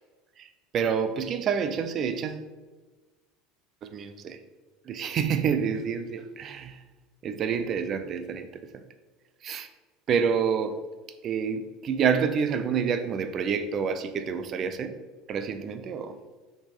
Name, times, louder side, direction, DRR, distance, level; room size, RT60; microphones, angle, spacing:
voice 1, 0.7-2.4 3.8-4.4 4.9-6.8 7.2-8.6 9.4-9.7 10.1-10.8 11.2-14.9 15.3-16.2, right 7 dB, 30° right, 10 dB, 0.5 m, -28 dB
6.2 x 4.4 x 4.9 m, 1.3 s
cardioid pair, 170°, 0 cm